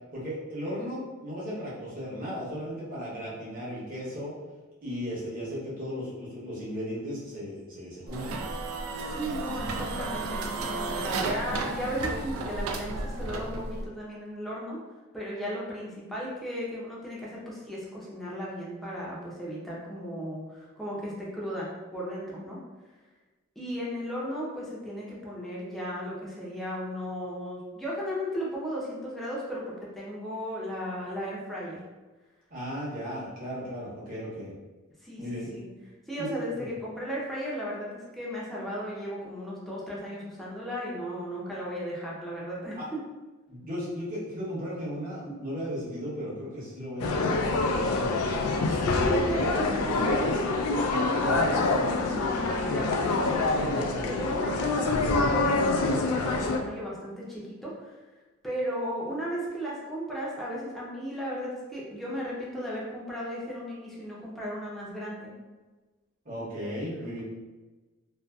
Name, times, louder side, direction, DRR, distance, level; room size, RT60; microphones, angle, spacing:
voice 1, 0.1-4.4 4.8-8.6 32.5-34.5 35.2-35.5 36.2-36.3 42.8-42.9 43.5-47.5 66.2-67.2, equal, 40° right, -7 dB, 0.9 m, -36 dB
sound 1, 8.1-13.9, right 3 dB, 80° right, 0.3 m, -33 dB
voice 2, 9.1-14.8 15.1-21.7 21.9-22.6 23.6-31.8 35.0-35.7 36.1-42.8 48.7-57.9 58.4-65.3, equal, ahead, -6 dB, 0.5 m, -35 dB
sound 2, 47.0-56.6, left 3 dB, 90° left, 0.3 m, -26 dB
2.6 x 2.3 x 2.2 m, 1.2 s
head